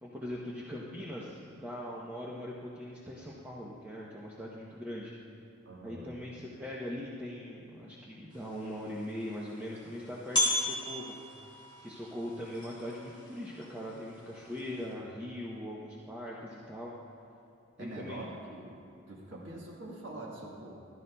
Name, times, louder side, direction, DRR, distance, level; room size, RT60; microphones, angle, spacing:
voice 1, 0.0-5.1 5.8-11.1 11.8-16.9 17.8-18.3, left 1 dB, 10° right, -6 dB, 0.7 m, -41 dB
voice 2, 5.6-6.2 17.8-20.8, right 1 dB, 70° right, -3 dB, 1.4 m, -44 dB
sound 1, 8.3-14.9, left 1 dB, 25° left, 2.6 m, -37 dB
15.0 x 12.0 x 2.3 m, 2.6 s
head